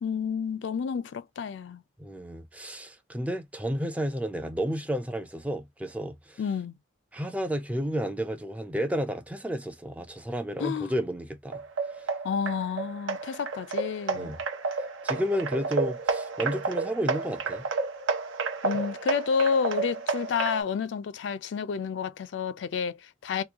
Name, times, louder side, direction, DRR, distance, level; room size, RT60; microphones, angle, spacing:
voice 1, 0.0-1.8 6.4-6.7 10.6-10.9 12.2-14.3 18.6-23.4, left 6 dB, 70° left, 0.3 m, -30 dB
voice 2, 2.0-6.4 7.1-11.6 14.1-14.4 15.0-17.7, equal, 5° right, 0.4 m, -31 dB
sound 1, 11.5-20.6, right 4 dB, 90° right, 0.7 m, -31 dB
2.9 x 2.3 x 3.4 m
head